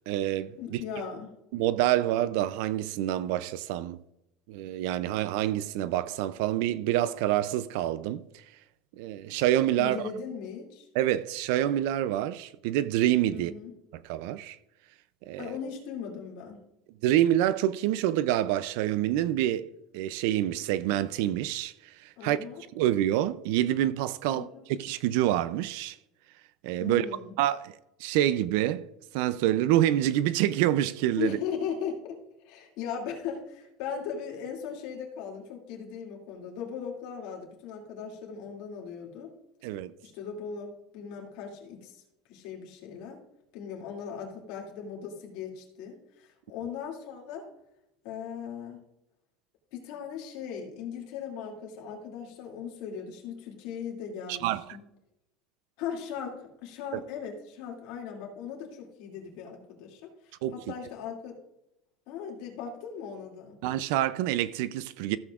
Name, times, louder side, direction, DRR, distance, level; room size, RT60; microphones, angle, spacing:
voice 1, 0.1-0.8 1.5-4.0 4.5-8.4 9.0-10.0 10.9-13.5 13.9-14.6 15.2-15.5 17.0-19.7 19.9-22.4 22.8-26.0 26.6-27.1 27.4-28.9 29.1-31.4 39.6-39.9 54.3-54.6 60.4-60.5 63.6-65.2, right 13 dB, 65° right, 0.4 m, -27 dB
voice 2, 0.6-1.4 9.8-10.9 13.3-13.7 15.4-16.6 22.2-22.6 24.3-24.6 26.8-27.3 31.2-39.3 40.0-42.0 42.3-43.2 43.5-47.5 48.0-48.8 49.7-54.8 55.8-61.4 62.1-63.6, left 7 dB, 60° left, 2.5 m, -38 dB
14.5 x 7.8 x 2.4 m
cardioid pair, 160°, 0 cm